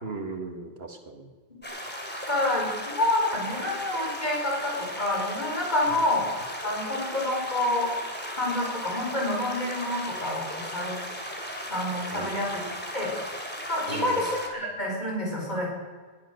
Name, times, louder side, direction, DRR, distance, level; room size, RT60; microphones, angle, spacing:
voice 1, 0.0-1.3 5.9-6.0 12.1-12.5 13.9-14.3, right 3 dB, 80° right, 4 dB, 2.1 m, -37 dB
sound 1, 1.6-14.5, equal, 10° left, 2.6 m, -36 dB
voice 2, 2.3-6.3 6.6-7.9 8.3-11.0 11.7-12.6 12.9-13.1 13.7-15.7, left 1 dB, 45° left, -3 dB, 5.5 m, -28 dB
20.0 x 10.5 x 6.6 m, 1.5 s
omnidirectional pair, 1.0 m